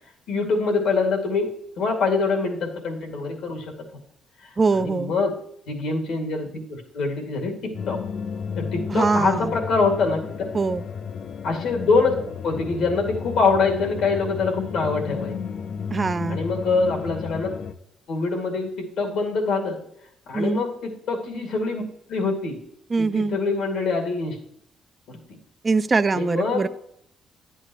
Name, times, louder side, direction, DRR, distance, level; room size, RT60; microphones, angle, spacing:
voice 1, 0.3-1.5 1.8-3.6 4.7-5.3 5.7-8.0 8.6-10.4 11.4-12.2 12.4-15.4 16.3-17.5 18.1-19.8 20.3-21.8 22.1-22.6 23.0-24.4 25.1-25.2 26.1-26.6, left 4 dB, 80° left, 2 dB, 2.3 m, -24 dB
voice 2, 4.6-5.1 8.9-9.6 10.5-10.9 15.9-16.4 20.3-20.6 22.9-23.4 25.6-26.7, right 4 dB, 30° right, 13 dB, 0.4 m, -22 dB
sound 1, 7.7-17.7, left 6 dB, 65° left, 0.6 m, -33 dB
11.5 x 8.1 x 3.0 m, 0.72 s
cardioid pair, 90°, 0 cm